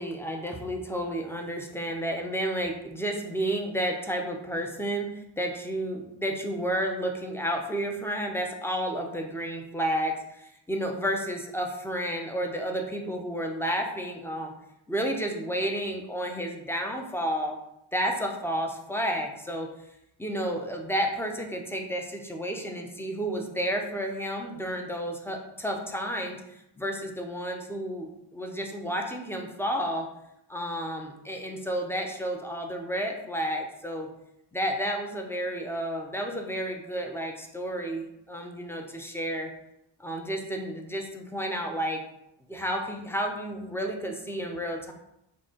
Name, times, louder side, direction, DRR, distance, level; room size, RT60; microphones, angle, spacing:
voice 1, 0.0-14.5 14.9-17.6 17.9-19.7 20.2-30.1 30.5-34.1 34.5-39.5 40.0-42.0 42.5-44.9, equal, 5° left, 2 dB, 0.3 m, -31 dB
3.7 x 2.4 x 3.6 m, 0.82 s
wide cardioid pair, 130°, 46 cm